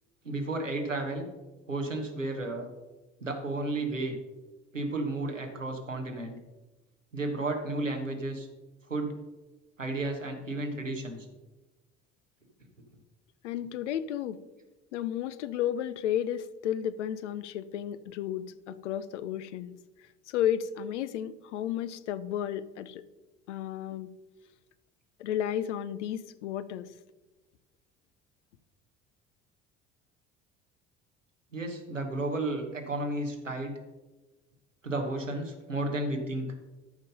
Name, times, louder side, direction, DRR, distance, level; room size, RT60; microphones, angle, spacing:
voice 1, 0.2-1.3 1.7-2.7 3.2-4.2 4.7-6.4 7.1-8.5 8.9-9.1 9.8-11.3 31.5-33.7 34.8-36.5, right 2 dB, 90° right, 3 dB, 1.3 m, -32 dB
voice 2, 13.4-14.4 14.9-19.7 20.3-23.0 23.5-24.1 25.2-26.9, left 10 dB, 70° left, 14 dB, 0.7 m, -32 dB
13.0 x 5.3 x 5.3 m, 1.1 s
figure-of-eight pair, 55°, 37 cm